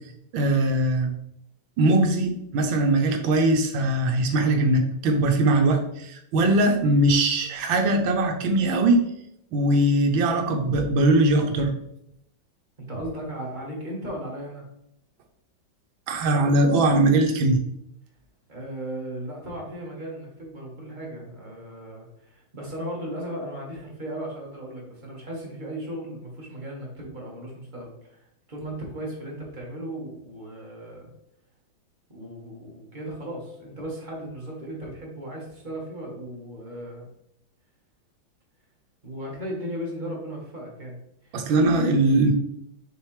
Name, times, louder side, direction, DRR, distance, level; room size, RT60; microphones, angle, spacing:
voice 1, 0.3-1.1 1.8-9.0 9.5-11.7 16.1-17.6 41.3-42.3, right 2 dB, 80° right, 4 dB, 1.6 m, -21 dB
voice 2, 12.8-14.7 18.5-28.2 28.5-31.1 32.1-37.1 39.0-41.5, right 1 dB, 25° right, -3 dB, 1.6 m, -36 dB
6.5 x 4.6 x 3.3 m, 0.77 s
omnidirectional pair, 2.1 m